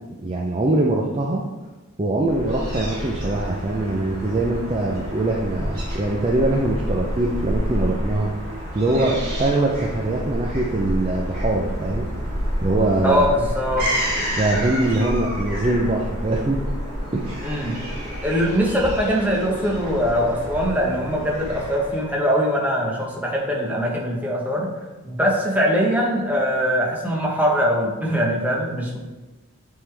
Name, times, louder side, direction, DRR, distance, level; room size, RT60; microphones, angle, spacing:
voice 1, 0.1-1.4 2.0-12.1 12.6-13.3 14.4-16.6 17.1-17.4, right 2 dB, 25° right, -1 dB, 0.4 m, -23 dB
Fowl / Gull seagull, 2.3-22.2, equal, 40° right, 2.0 m, -29 dB
voice 2, 13.0-13.9 17.4-17.8 18.2-24.7 25.0-29.0, equal, 5° right, -2 dB, 0.9 m, -22 dB
8.6 x 3.7 x 3.3 m, 1.2 s
head